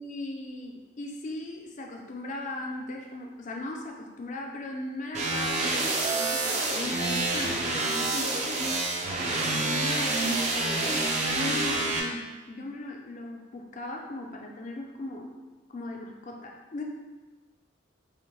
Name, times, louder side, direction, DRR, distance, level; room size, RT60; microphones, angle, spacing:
voice 1, 0.0-5.7 6.1-8.3 9.5-15.3 15.7-16.8, left 2 dB, 40° left, 1 dB, 0.4 m, -38 dB
sound 1, 5.1-12.0, right 2 dB, 35° right, 0.4 m, -27 dB
5.6 x 2.1 x 3.0 m, 1.2 s
head